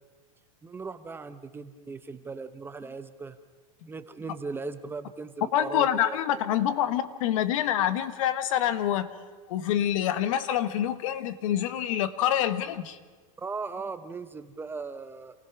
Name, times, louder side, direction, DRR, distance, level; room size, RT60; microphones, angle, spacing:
voice 1, 0.6-3.4 3.9-6.5 13.4-15.3, right 4 dB, 10° right, 10 dB, 0.8 m, -38 dB
voice 2, 5.5-9.1 9.5-13.0, left 10 dB, 70° left, 13 dB, 1.3 m, -26 dB
28.0 x 16.0 x 6.0 m, 1.4 s
supercardioid pair, 140°, 18 cm